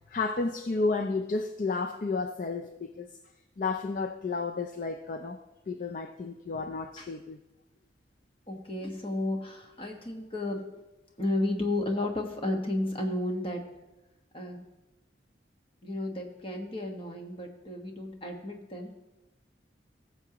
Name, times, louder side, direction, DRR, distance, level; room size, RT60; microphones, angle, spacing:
voice 1, 0.0-3.2 3.6-5.4 5.7-7.4, left 3 dB, 45° left, 6 dB, 0.4 m, -32 dB
voice 2, 8.5-10.6 11.2-13.6 14.3-14.6 15.8-18.9, left 1 dB, 30° left, 2 dB, 1.3 m, -32 dB
18.0 x 7.1 x 2.9 m, 1.0 s
head